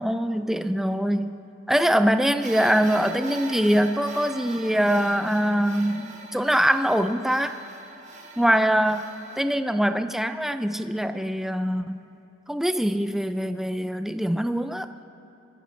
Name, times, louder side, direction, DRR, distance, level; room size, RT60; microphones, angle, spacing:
voice 1, 0.0-1.4 1.7-7.5 8.4-9.0 9.4-12.0 12.5-14.9, equal, ahead, 9 dB, 0.4 m, -23 dB
sound 1, 2.4-9.4, right 3 dB, 40° right, 1.2 m, -41 dB
23.0 x 15.0 x 3.2 m, 2.9 s
head